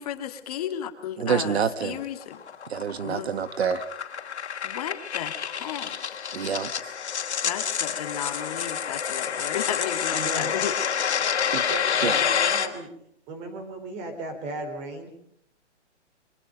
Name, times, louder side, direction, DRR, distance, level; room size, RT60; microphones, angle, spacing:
voice 1, 0.0-2.4 3.0-3.3 4.6-6.3 7.4-10.7, left 10 dB, 30° left, 6 dB, 2.2 m, -34 dB
voice 2, 1.2-2.0 2.7-3.9 6.3-6.9 11.5-11.7 12.0-12.2, right 7 dB, 65° right, 12 dB, 1.7 m, -27 dB
sound 1, 1.9-12.7, left 7 dB, 65° left, 3.5 m, -28 dB
voice 3, 10.1-10.5 11.2-12.9 13.3-15.1, right 2 dB, 20° right, 8 dB, 4.2 m, -36 dB
28.5 x 25.0 x 5.3 m, 0.74 s
hypercardioid pair, 165°, 35 cm